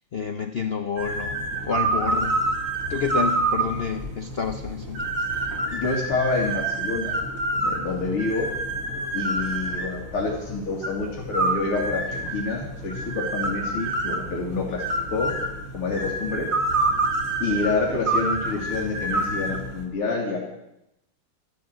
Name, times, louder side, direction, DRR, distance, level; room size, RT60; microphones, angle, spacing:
voice 1, 0.0-2.4 2.9-5.3 7.5-7.7 8.9-9.1, left 6 dB, 70° left, 7 dB, 0.5 m, -29 dB
sound 1, 1.0-19.8, right 2 dB, 40° right, 3.0 m, -27 dB
voice 2, 5.7-7.2 7.6-8.5 9.1-14.8 15.1-15.3 15.7-16.5 17.4-20.4, left 3 dB, 90° left, -2 dB, 3.4 m, -27 dB
13.0 x 12.5 x 7.8 m, 0.87 s
omnidirectional pair, 2.4 m